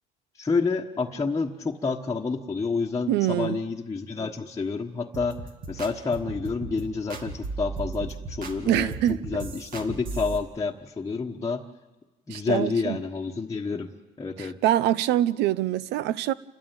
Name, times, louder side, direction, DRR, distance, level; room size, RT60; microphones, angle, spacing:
voice 1, 0.4-5.4 5.7-11.6 12.3-13.9 14.2-14.6, left 4 dB, 20° left, 1.3 m, -29 dB
voice 2, 3.1-3.6 8.7-9.2 12.3-13.0 14.4-16.3, right 13 dB, 85° right, 0.7 m, -24 dB
sound 1, 5.1-10.4, right 4 dB, 55° right, 2.3 m, -36 dB
28.5 x 13.0 x 9.0 m
cardioid pair, 110°, 17 cm